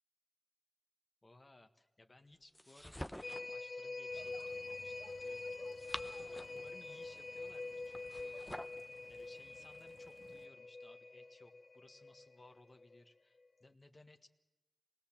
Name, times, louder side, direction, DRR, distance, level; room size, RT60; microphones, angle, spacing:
voice 1, 1.2-5.4 6.3-8.4 9.1-13.3 13.6-14.3, left 2 dB, 40° left, 6 dB, 1.5 m, -62 dB
sound 1, 2.5-3.6 5.5-6.7 7.9-8.8, equal, 5° left, 0.7 m, -47 dB
sound 2, 3.2-13.0 13.4-13.5, left 3 dB, 70° left, 0.9 m, -46 dB
sound 3, 4.1-10.5, right 3 dB, 65° right, 1.4 m, -62 dB
26.5 x 20.5 x 7.4 m, 1.0 s
wide cardioid pair, 80°, 0 cm